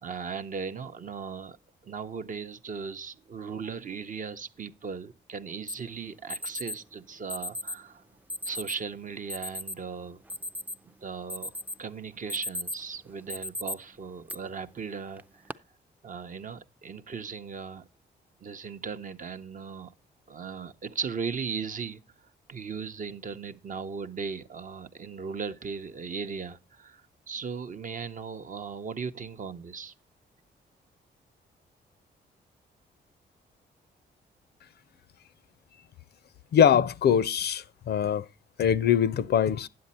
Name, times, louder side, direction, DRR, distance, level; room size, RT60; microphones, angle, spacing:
voice 1, 0.0-1.6 1.8-8.0 8.4-10.2 11.0-11.5 11.8-15.5 16.0-17.9 18.4-19.9 20.3-22.0 22.5-29.9, right 5 dB, 45° right, 0.6 m, -37 dB
Alarm, 5.7-5.8 6.3-6.8 7.3-7.8 8.3-8.8 9.3-9.8 10.1-10.9 11.3-11.8 12.1-12.9 13.3-13.7 14.3-14.4 15.2-15.5, left 1 dB, 10° right, 0.4 m, -35 dB
voice 2, 36.5-38.2 38.6-39.7, left 8 dB, 60° left, 0.4 m, -23 dB
9.5 x 7.5 x 4.1 m
cardioid pair, 80°, 19 cm